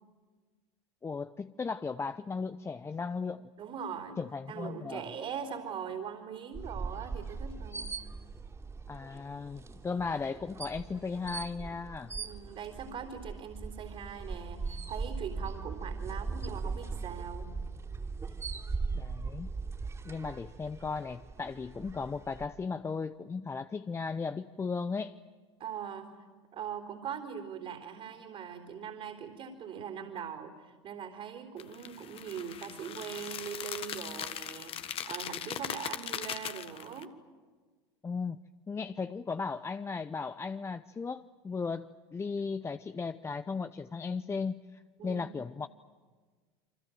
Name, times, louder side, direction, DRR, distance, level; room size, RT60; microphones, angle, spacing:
voice 1, 1.0-3.5 4.2-5.0 8.9-12.1 18.9-19.5 20.0-25.2 38.0-38.4 38.7-45.7, left 4 dB, 20° left, 11 dB, 0.7 m, -36 dB
voice 2, 3.6-4.2 4.5-8.0 12.2-17.5 25.6-26.3 26.5-34.8 35.0-37.1 45.0-45.3, right 7 dB, 45° right, 2 dB, 3.9 m, -41 dB
sound 1, 6.5-22.5, right 4 dB, 20° right, 3.1 m, -40 dB
sound 2, 31.6-37.0, left 10 dB, 40° left, 1.4 m, -39 dB
28.5 x 24.5 x 7.8 m, 1.5 s
hypercardioid pair, 85°, 15 cm